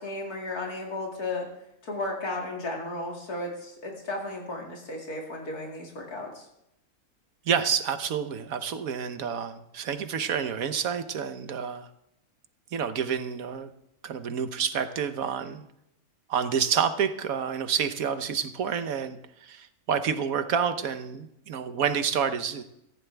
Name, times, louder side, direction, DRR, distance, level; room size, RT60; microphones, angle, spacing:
voice 1, 0.0-1.5 1.8-6.5, left 2 dB, 85° left, -1 dB, 3.0 m, -34 dB
voice 2, 7.5-11.9 12.7-13.7 14.0-15.6 16.3-22.6, right 7 dB, 70° right, 10 dB, 1.4 m, -29 dB
17.5 x 15.0 x 3.4 m, 0.80 s
omnidirectional pair, 1.6 m